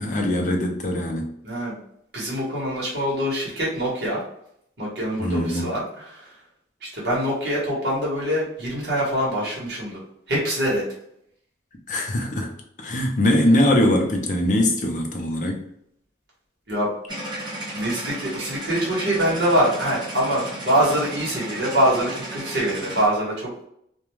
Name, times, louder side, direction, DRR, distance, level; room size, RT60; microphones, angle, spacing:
voice 1, 0.0-1.3 5.2-5.7 11.9-12.5 12.8-15.6, left 1 dB, 40° left, 2 dB, 0.5 m, -22 dB
voice 2, 1.4-1.8 2.1-4.2 4.8-6.3 6.8-10.0 10.3-10.8 16.7-16.9 17.5-23.6, equal, 60° right, -6 dB, 1.2 m, -24 dB
sound 1, 17.1-23.1, right 1 dB, 25° right, 0.5 m, -34 dB
2.4 x 2.2 x 3.1 m, 0.72 s
head